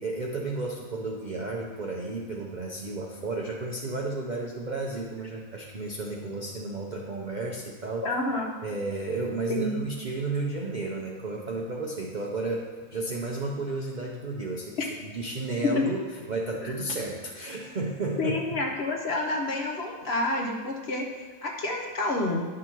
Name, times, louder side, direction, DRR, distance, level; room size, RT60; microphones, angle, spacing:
voice 1, 0.0-8.0 8.6-12.7 12.9-14.8 15.1-18.4, right 2 dB, 50° right, -1 dB, 0.5 m, -32 dB
voice 2, 8.0-8.5 9.5-9.8 15.8-15.9 16.6-16.7 18.2-22.4, left 2 dB, 50° left, 0 dB, 1.0 m, -29 dB
10.5 x 6.2 x 2.9 m, 1.4 s
omnidirectional pair, 1.6 m